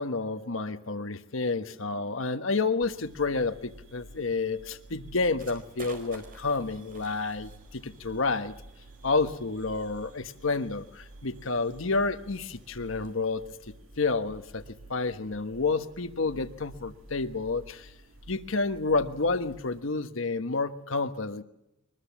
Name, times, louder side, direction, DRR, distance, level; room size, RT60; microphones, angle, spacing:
voice 1, 0.0-8.5 9.0-13.4 14.0-14.6 14.9-17.9 18.3-21.4, left 3 dB, 75° left, 9 dB, 1.2 m, -29 dB
sound 1, 2.8-19.8, right 2 dB, 80° right, 1.8 m, -51 dB
sound 2, 5.4-13.2, right 3 dB, 45° right, 4.6 m, -53 dB
23.5 x 20.5 x 7.4 m, 0.86 s
head